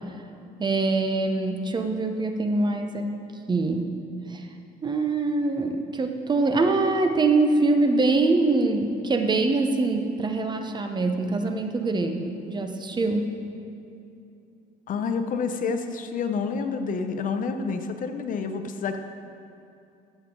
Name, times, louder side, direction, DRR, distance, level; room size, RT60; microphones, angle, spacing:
voice 1, 0.6-3.1 3.5-3.9 4.3-4.5 4.8-13.3, right 3 dB, 25° right, 5 dB, 0.8 m, -24 dB
voice 2, 14.9-19.0, left 5 dB, 50° left, 7 dB, 0.7 m, -28 dB
13.5 x 7.5 x 3.8 m, 2.7 s
cardioid pair, 110°, 17 cm